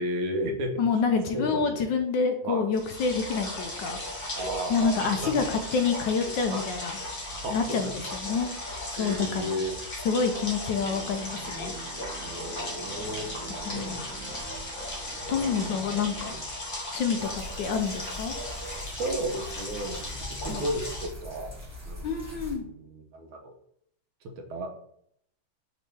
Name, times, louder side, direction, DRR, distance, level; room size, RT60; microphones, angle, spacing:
voice 1, 0.0-0.7 1.3-1.8 2.4-2.7 4.4-5.5 6.5-6.6 7.3-8.0 9.0-9.8 12.2-13.3 13.7-14.5 15.3-15.7 18.7-21.5 21.9-23.5 24.2-24.7, right 1 dB, 85° right, 4 dB, 1.6 m, -34 dB
voice 2, 0.8-4.0 4.7-7.0 7.5-9.5 10.0-11.7 13.7-14.0 14.8-16.4 16.9-18.3 20.5-20.6 22.0-22.6, left 5 dB, 75° left, 6 dB, 1.1 m, -28 dB
sound 1, 2.7-21.1, left 1 dB, 35° left, 0.9 m, -36 dB
sound 2, 10.7-16.5, right 4 dB, 65° right, 1.3 m, -45 dB
sound 3, 17.2-22.6, left 1 dB, 15° right, 0.6 m, -42 dB
5.2 x 3.0 x 3.3 m, 0.69 s
omnidirectional pair, 2.2 m